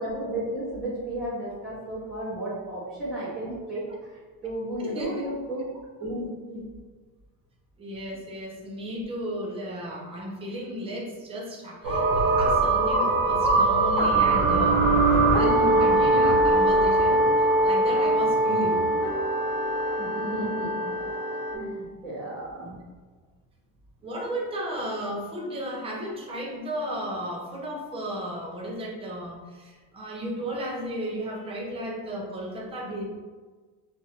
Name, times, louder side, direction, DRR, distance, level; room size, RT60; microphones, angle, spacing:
voice 1, 0.0-3.8 4.4-5.6 6.0-6.7 18.5-18.7 20.0-20.9 21.5-22.8, right 1 dB, ahead, -14 dB, 1.4 m, -33 dB
voice 2, 4.8-5.3 7.8-18.8 22.7-22.8 24.0-33.0, equal, 15° right, -2 dB, 0.3 m, -34 dB
sound 1, 11.8-21.6, right 2 dB, 80° right, 0.8 m, -22 dB
3.1 x 2.4 x 2.8 m, 1.4 s
cardioid pair, 175°, 37 cm